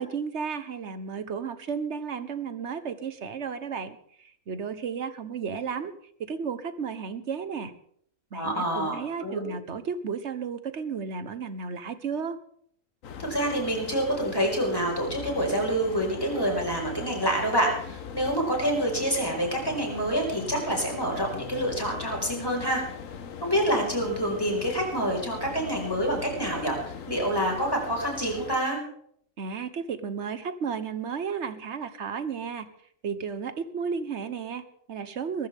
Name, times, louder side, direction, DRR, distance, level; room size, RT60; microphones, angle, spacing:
voice 1, 0.0-5.9 6.2-7.7 8.3-12.4 29.4-32.7 33.0-35.5, right 6 dB, 60° right, 12 dB, 1.4 m, -33 dB
voice 2, 8.3-9.5 13.2-22.8 23.4-28.8, right 1 dB, 15° left, 0 dB, 5.1 m, -27 dB
sound 1, 13.0-28.6, left 6 dB, 90° left, 1.4 m, -40 dB
22.0 x 14.5 x 3.6 m, 0.65 s
omnidirectional pair, 1.3 m